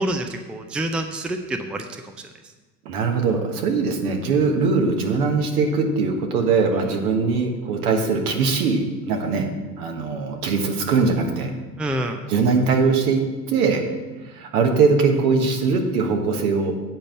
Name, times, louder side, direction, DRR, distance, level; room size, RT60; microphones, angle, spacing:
voice 1, 0.0-2.0 11.8-12.2, right 1 dB, ahead, 6 dB, 0.5 m, -27 dB
voice 2, 2.8-9.4 9.8-11.5 12.3-13.2 13.5-13.8 14.3-16.7, right 4 dB, 65° right, 3 dB, 1.6 m, -21 dB
8.7 x 5.2 x 7.2 m, 1.3 s
hypercardioid pair, 75°, 48 cm